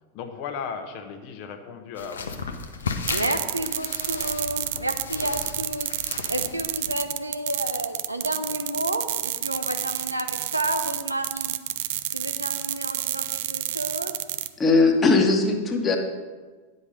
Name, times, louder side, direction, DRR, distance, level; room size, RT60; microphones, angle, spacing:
voice 1, 0.1-2.6, left 6 dB, 45° left, 6 dB, 1.0 m, -36 dB
sound 1, 2.0-7.0, left 5 dB, 70° left, 0.8 m, -35 dB
voice 2, 3.0-11.5 12.1-14.1, right 1 dB, 85° right, 6 dB, 0.8 m, -31 dB
sound 2, 3.1-14.5, right 14 dB, 50° right, 0.4 m, -29 dB
voice 3, 14.6-16.0, left 3 dB, 20° left, 3 dB, 1.4 m, -19 dB
9.8 x 5.4 x 6.4 m, 1.4 s
figure-of-eight pair, 90°, 0 cm